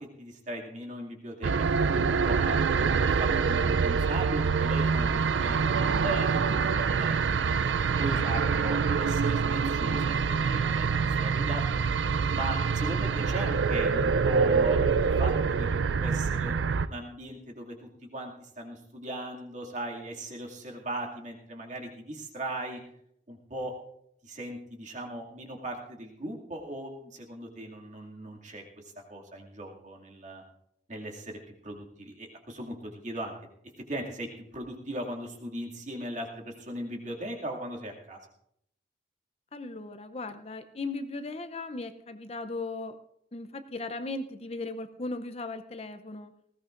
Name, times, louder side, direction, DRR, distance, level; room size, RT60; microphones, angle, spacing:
voice 1, 0.2-5.6 6.0-11.6 12.3-14.9 15.2-22.8 23.3-23.7 24.2-30.4 30.9-31.4 31.6-33.3 33.9-38.2, right 1 dB, 40° right, -1 dB, 2.4 m, -38 dB
sound 1, 1.4-16.9, right 5 dB, 90° right, 0.4 m, -26 dB
voice 2, 39.5-43.0 43.3-46.3, left 3 dB, 35° left, 9 dB, 0.6 m, -37 dB
19.5 x 17.0 x 2.5 m, 0.74 s
head